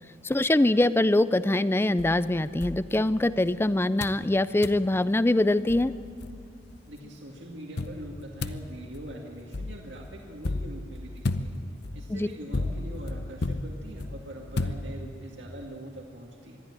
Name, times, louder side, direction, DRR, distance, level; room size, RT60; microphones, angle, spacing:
voice 1, 0.2-5.9 12.1-12.3, left 1 dB, 10° left, 15 dB, 0.4 m, -23 dB
sound 1, 2.0-3.5 4.0-4.3 4.6-4.9 5.4-5.5 5.7-6.8 7.8-15.3, left 2 dB, 60° left, 0.8 m, -34 dB
voice 2, 6.9-11.5 11.9-16.6, equal, 65° right, 0 dB, 2.2 m, -43 dB
22.0 x 13.5 x 9.9 m, 2.4 s
head